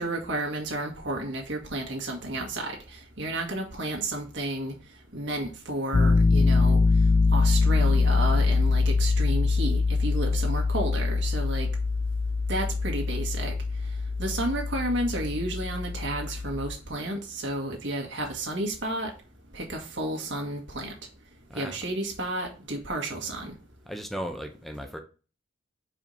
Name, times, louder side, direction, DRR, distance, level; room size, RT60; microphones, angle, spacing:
voice 1, 0.0-4.7 5.1-6.8 7.3-11.7 12.5-13.5 14.2-19.1 19.5-20.9 21.6-23.5, right 1 dB, 65° right, 1.8 m, -32 dB
Piano, 5.9-16.8, left 3 dB, 30° left, 0.4 m, -24 dB
voice 2, 23.8-25.0, equal, ahead, 0.9 m, -36 dB
5.0 x 4.5 x 5.4 m
head